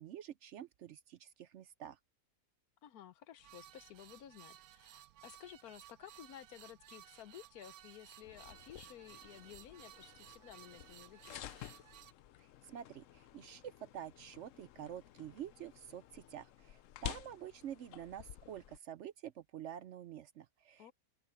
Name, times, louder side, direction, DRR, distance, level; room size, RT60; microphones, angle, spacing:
voice 1, 0.0-2.0 12.4-20.9, right 10 dB, 65° right, 0.8 m, -48 dB
voice 2, 2.8-11.4 20.8-20.9, left 11 dB, 85° left, 1.3 m, -54 dB
sound 1, 3.4-12.1, right 12 dB, 80° right, 1.1 m, -58 dB
sound 2, 8.2-18.8, left 12 dB, 65° left, 0.9 m, -52 dB
open air
omnidirectional pair, 1.5 m